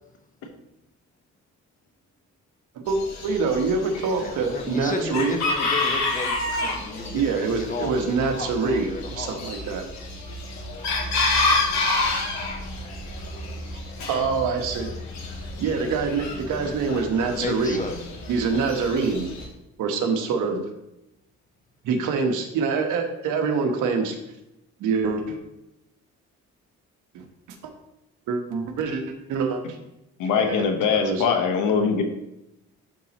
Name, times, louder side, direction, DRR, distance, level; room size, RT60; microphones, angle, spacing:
voice 1, 2.7-5.4 7.1-9.9 14.1-14.9 15.6-17.8 18.3-19.3 19.8-20.6 21.8-24.2 24.8-25.4 27.1-27.2 28.3-29.6 30.4-30.7 30.9-31.2, right 4 dB, 85° right, 4 dB, 1.2 m, -25 dB
Chicken rooster, 2.9-19.4, left 2 dB, 65° left, 2.1 m, -29 dB
voice 2, 4.0-9.5 17.3-18.0, left 3 dB, 25° left, 5 dB, 1.0 m, -33 dB
voice 3, 30.2-32.0, left 6 dB, 90° left, 4 dB, 1.1 m, -22 dB
11.5 x 4.2 x 3.0 m, 0.89 s
cardioid pair, 90°, 30 cm